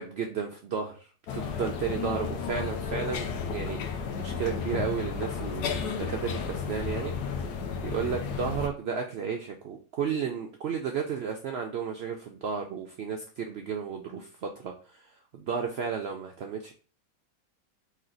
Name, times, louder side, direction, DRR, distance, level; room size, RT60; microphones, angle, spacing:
voice 1, 0.0-7.4 7.8-16.7, right 6 dB, 90° right, 3 dB, 0.5 m, -33 dB
sound 1, 1.3-8.7, left 6 dB, 85° left, 1.2 m, -33 dB
4.2 x 2.7 x 3.8 m, 0.39 s
omnidirectional pair, 1.7 m